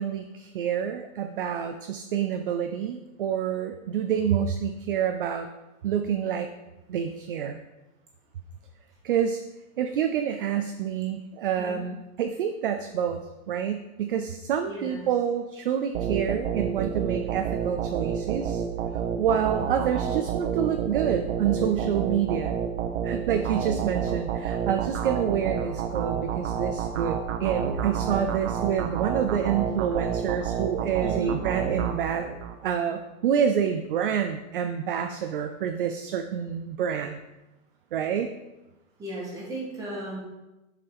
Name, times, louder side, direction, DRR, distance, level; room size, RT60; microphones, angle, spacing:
voice 1, 0.0-5.5 5.8-6.5 6.9-7.6 9.0-9.4 9.8-18.6 19.2-22.6 23.0-32.3 32.6-37.2 37.9-38.3, right 8 dB, 45° right, 6 dB, 0.4 m, -28 dB
voice 2, 14.7-15.0 31.0-31.3 39.0-40.2, right 2 dB, 10° right, -6 dB, 1.7 m, -35 dB
sound 1, 15.9-32.6, right 7 dB, 60° right, 0.9 m, -29 dB
7.5 x 5.0 x 5.4 m, 1.0 s
supercardioid pair, 180°, 41 cm